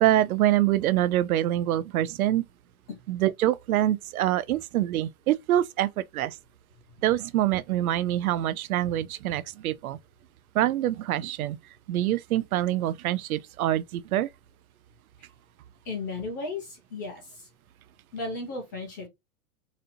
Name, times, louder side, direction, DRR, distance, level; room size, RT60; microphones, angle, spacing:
voice 1, 0.0-2.4 3.1-6.4 7.0-10.0 10.5-11.6 11.9-14.3, right 13 dB, 70° right, 0.5 m, -25 dB
voice 2, 15.8-17.5 18.1-19.1, left 3 dB, 15° left, 0.4 m, -35 dB
4.1 x 2.7 x 2.6 m
supercardioid pair, 165°, 44 cm